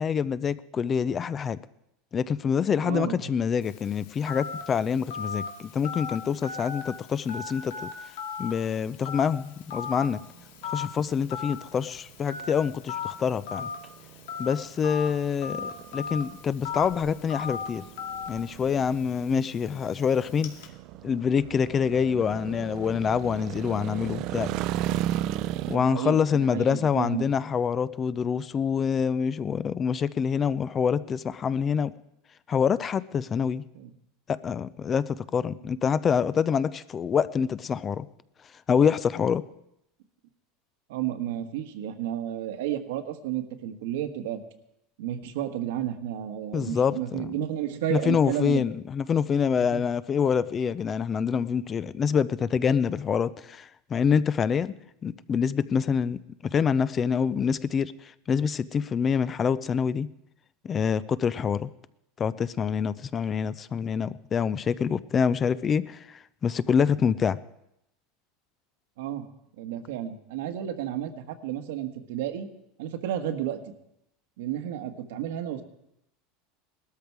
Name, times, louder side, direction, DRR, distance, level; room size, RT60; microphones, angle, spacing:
voice 1, 0.0-1.6 2.1-7.9 8.4-10.2 10.6-13.7 14.4-17.8 18.3-20.5 21.0-24.5 25.7-31.9 32.5-33.6 34.3-38.1 38.7-39.4 46.5-47.3 47.9-54.7 55.0-56.2 56.5-60.1 60.6-61.7 62.2-67.4, left 7 dB, 25° left, 17 dB, 0.5 m, -26 dB
voice 2, 2.8-3.3 19.3-19.4 25.6-27.3 33.7-33.9 40.9-44.4 45.0-48.6 49.5-49.8 69.0-69.3 69.6-72.5 72.8-73.6 74.4-75.6, right 11 dB, 80° right, 7 dB, 1.5 m, -32 dB
Telephone, 3.6-20.7, left 6 dB, 90° left, 2.2 m, -38 dB
sound 1, 9.6-25.8, right 12 dB, 50° right, 0.5 m, -36 dB
19.0 x 13.0 x 4.7 m, 0.81 s
supercardioid pair, 150°, 0 cm